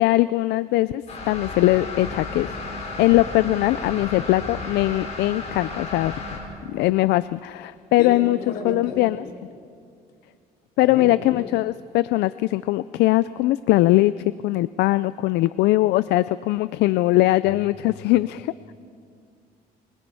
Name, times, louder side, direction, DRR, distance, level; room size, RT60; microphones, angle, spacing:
voice 1, 0.0-2.6 3.0-6.2 6.7-8.4 8.6-9.2 10.8-18.7, left 17 dB, 85° left, 16 dB, 0.4 m, -21 dB
sound 1, 1.1-6.4, left 2 dB, 40° left, 5.6 m, -33 dB
voice 2, 8.0-9.4 10.8-11.1 17.6-18.0, left 3 dB, 65° left, -1 dB, 4.8 m, -34 dB
24.5 x 22.5 x 5.6 m, 2.3 s
cardioid pair, 110°, 17 cm